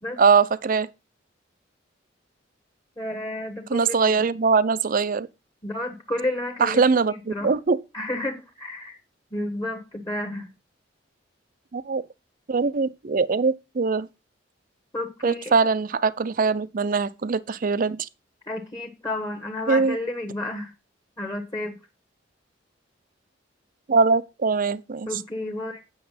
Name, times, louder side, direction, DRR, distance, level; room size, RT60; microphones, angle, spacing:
voice 1, 0.2-0.9 3.7-5.3 6.6-7.8 11.7-12.0 12.5-14.1 15.2-18.1 19.7-20.0 23.9-25.1, right 4 dB, 45° right, 0.5 m, -22 dB
voice 2, 3.0-4.2 5.6-6.8 7.1-7.5 7.9-9.0 9.3-10.5 14.9-15.5 18.5-20.7 21.2-21.8 25.1-25.8, left 1 dB, 20° left, 1.2 m, -31 dB
8.7 x 6.4 x 5.7 m
head